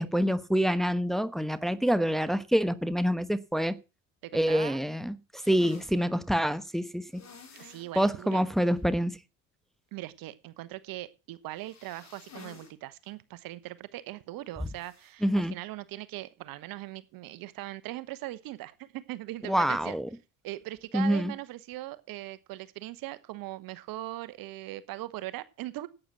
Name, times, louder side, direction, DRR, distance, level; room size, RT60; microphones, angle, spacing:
voice 1, 0.0-3.7 4.3-5.1 5.5-7.2 8.0-9.1 15.2-15.5 19.5-20.1 20.9-21.3, equal, ahead, 1.1 m, -26 dB
voice 2, 4.2-4.8 7.6-8.5 9.9-20.0 20.4-25.9, right 16 dB, 60° right, 1.1 m, -40 dB
sound 1, 5.4-5.9 7.1-7.9 8.3-8.4 8.8-8.9 11.5-12.7 13.0-13.1 14.8-15.1, left 6 dB, 40° left, 3.7 m, -50 dB
11.5 x 8.9 x 6.1 m
hypercardioid pair, 60°, 39 cm